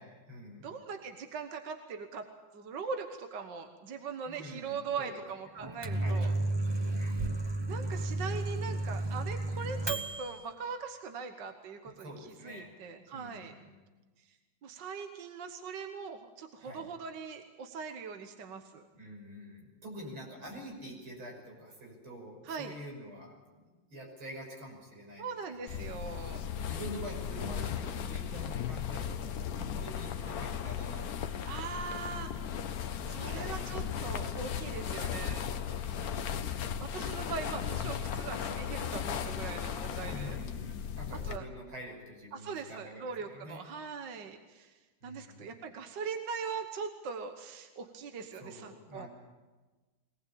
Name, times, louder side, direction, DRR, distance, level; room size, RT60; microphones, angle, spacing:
voice 1, 0.0-0.7 4.2-5.2 5.5-6.2 6.9-7.3 11.8-12.7 13.1-13.7 16.6-16.9 18.9-25.8 26.7-31.8 33.2-34.0 34.9-35.2 36.0-36.4 40.1-43.6 45.0-45.6 48.3-49.1, equal, 90° right, 0 dB, 6.8 m, -47 dB
voice 2, 0.6-2.3 2.5-6.3 7.7-13.5 14.3-14.4 14.6-18.9 22.5-22.7 25.2-26.4 31.5-32.3 33.1-35.5 36.8-40.4 41.3-41.5 42.3-44.8 45.0-49.1, right 5 dB, 60° right, 6 dB, 1.8 m, -41 dB
Microwave oven, 5.6-10.4, right 2 dB, 20° right, 0.7 m, -32 dB
sound 1, 25.7-41.4, left 8 dB, 55° left, 1.2 m, -36 dB
23.0 x 18.5 x 8.6 m, 1.3 s
omnidirectional pair, 2.2 m